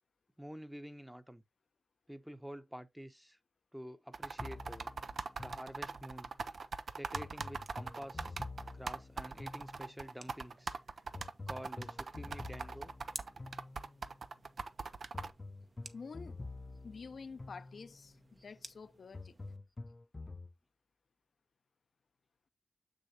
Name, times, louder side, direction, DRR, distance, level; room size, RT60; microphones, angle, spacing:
voice 1, 0.4-1.4 2.1-3.4 3.7-4.9 5.4-6.3 6.9-8.4 8.7-10.8 11.5-12.9, equal, 5° right, 0.8 m, -48 dB
sound 1, 4.1-15.3, right 4 dB, 70° right, 0.5 m, -41 dB
sound 2, 4.4-6.3 7.1-10.2 11.1-14.2 15.1-18.2 19.1-20.5, left 3 dB, 35° left, 0.6 m, -48 dB
sound 3, 7.2-19.6, right 3 dB, 50° right, 0.8 m, -57 dB
voice 2, 15.9-16.4 16.8-19.3, left 5 dB, 75° left, 0.7 m, -49 dB
6.9 x 6.4 x 2.8 m
cardioid pair, 65°, 0 cm